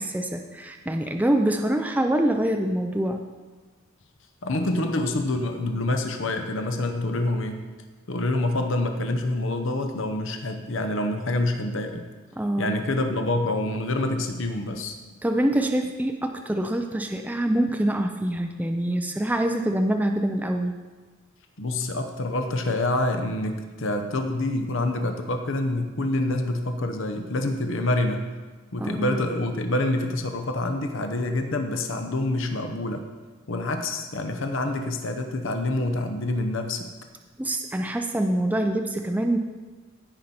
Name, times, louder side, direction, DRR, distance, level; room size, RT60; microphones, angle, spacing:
voice 1, 0.0-3.2 12.4-12.8 15.2-20.7 28.8-29.2 37.4-39.4, right 1 dB, 5° right, 4 dB, 0.4 m, -25 dB
voice 2, 4.4-7.6 8.1-12.1 12.6-15.0 21.6-28.3 28.7-33.0 33.5-36.9, left 2 dB, 65° left, 6 dB, 0.8 m, -26 dB
16.0 x 5.5 x 4.3 m, 1.3 s
head